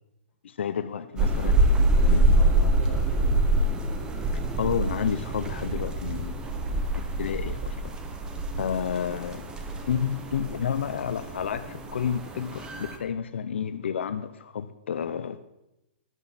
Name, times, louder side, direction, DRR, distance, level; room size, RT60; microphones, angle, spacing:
voice 1, 0.4-1.5 2.1-2.3 4.6-6.7 7.2-7.9 8.6-9.4 9.9-15.4, left 7 dB, 85° left, 11 dB, 0.7 m, -30 dB
sound 1, 1.2-13.0, right 1 dB, 15° right, 1.1 m, -26 dB
voice 2, 1.8-3.3 6.7-7.2 9.2-9.3, left 2 dB, 15° left, -5 dB, 3.7 m, -43 dB
14.0 x 11.0 x 4.3 m, 0.90 s
hypercardioid pair, 155°, 6 cm